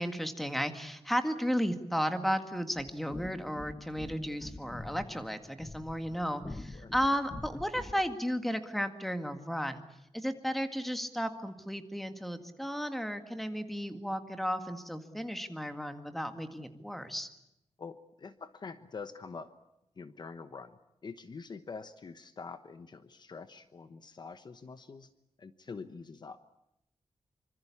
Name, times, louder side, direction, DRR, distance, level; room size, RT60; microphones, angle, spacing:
voice 1, 0.0-9.8 10.1-17.3, equal, ahead, 7 dB, 1.9 m, -34 dB
sound 1, 2.7-8.1, left 2 dB, 15° left, 1.0 m, -46 dB
voice 2, 17.8-19.5 20.0-25.1 25.4-26.4, left 5 dB, 45° left, 11 dB, 1.0 m, -45 dB
25.5 x 25.5 x 8.5 m, 0.84 s
wide cardioid pair, 180°, 11 cm